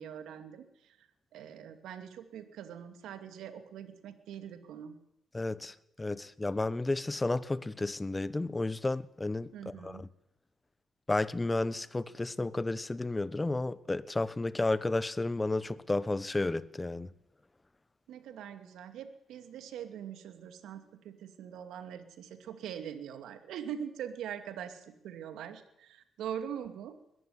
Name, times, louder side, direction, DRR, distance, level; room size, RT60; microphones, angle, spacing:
voice 1, 0.0-4.9 9.5-10.1 18.1-27.0, right 9 dB, 80° right, 2.5 m, -43 dB
voice 2, 5.3-10.1 11.1-17.1, left 2 dB, 20° left, 1.2 m, -32 dB
21.5 x 14.5 x 9.7 m
supercardioid pair, 70°, 0 cm